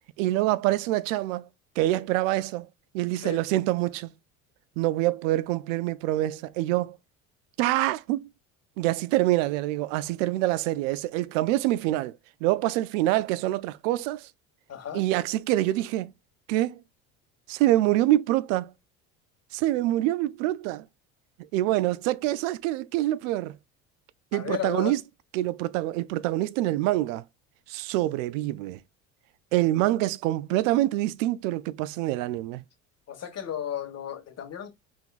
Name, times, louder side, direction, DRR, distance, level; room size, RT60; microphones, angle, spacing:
voice 1, 0.2-1.4 1.8-2.7 2.9-4.1 4.8-7.0 7.6-8.3 8.8-12.2 12.4-14.3 14.9-16.1 16.5-16.8 17.5-18.7 19.5-20.8 21.5-23.6 24.3-25.0 25.3-27.2 27.7-28.8 29.5-32.6, right 15 dB, 80° right, 0.5 m, -25 dB
voice 2, 14.7-15.0 24.3-24.9 33.1-34.7, left 9 dB, 40° left, 1.6 m, -34 dB
3.6 x 3.5 x 2.4 m
hypercardioid pair, 80°, 38 cm